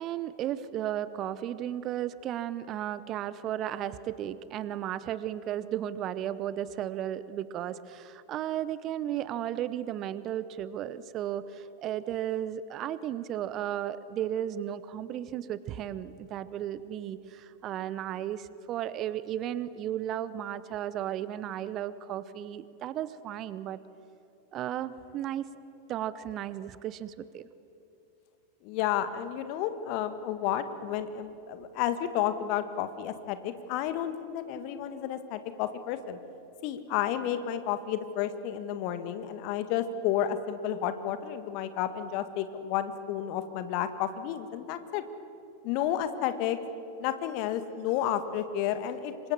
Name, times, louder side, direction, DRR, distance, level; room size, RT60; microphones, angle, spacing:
voice 1, 0.0-23.8 24.5-25.5 25.9-27.5, right 11 dB, 35° right, 16 dB, 0.9 m, -34 dB
voice 2, 28.6-36.2 36.6-45.0 45.6-46.6 47.0-49.3, left 10 dB, 45° left, 10 dB, 1.6 m, -31 dB
27.0 x 24.5 x 7.4 m, 2.9 s
figure-of-eight pair, 90°, 0 cm